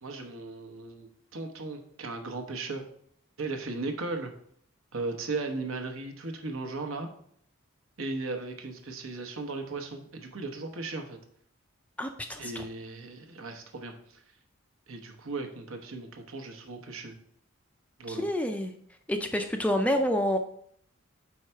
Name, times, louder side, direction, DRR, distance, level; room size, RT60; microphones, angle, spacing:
voice 1, 0.0-2.8 3.4-4.3 4.9-7.1 8.0-11.2 12.4-14.2 14.9-17.2 18.0-18.3, right 3 dB, 75° right, 4 dB, 0.9 m, -37 dB
voice 2, 12.0-12.6 18.1-18.7 19.1-20.4, equal, 5° left, 6 dB, 0.3 m, -28 dB
4.7 x 4.4 x 5.6 m, 0.66 s
head